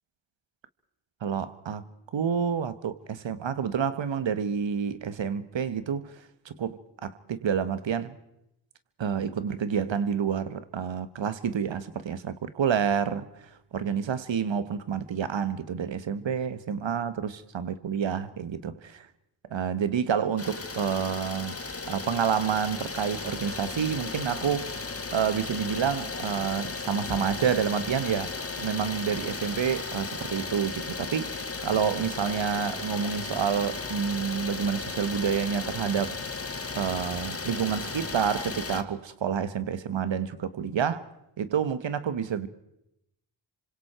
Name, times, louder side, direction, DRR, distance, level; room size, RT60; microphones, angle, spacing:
voice 1, 1.2-1.8 2.1-6.1 6.4-8.2 9.0-13.2 13.7-19.1 19.5-21.6 21.9-24.7 25.1-28.3 28.6-36.2 36.7-41.0 41.4-42.5, right 7 dB, 65° right, 1.5 m, -29 dB
Idling, 20.4-38.8, left 4 dB, 30° left, 1.8 m, -35 dB
28.0 x 25.5 x 4.5 m
supercardioid pair, 45°, 49 cm